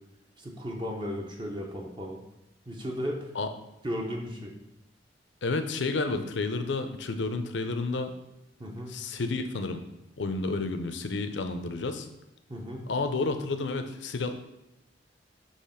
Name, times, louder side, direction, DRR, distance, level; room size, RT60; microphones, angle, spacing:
voice 1, 0.4-2.2 2.7-3.3 3.8-4.5 8.6-8.9 12.5-12.9, equal, 25° right, 0 dB, 0.7 m, -35 dB
voice 2, 5.4-8.1 8.9-9.8 10.2-12.1 12.9-14.3, left 3 dB, 70° left, 8 dB, 0.6 m, -30 dB
6.5 x 3.0 x 5.6 m, 0.89 s
head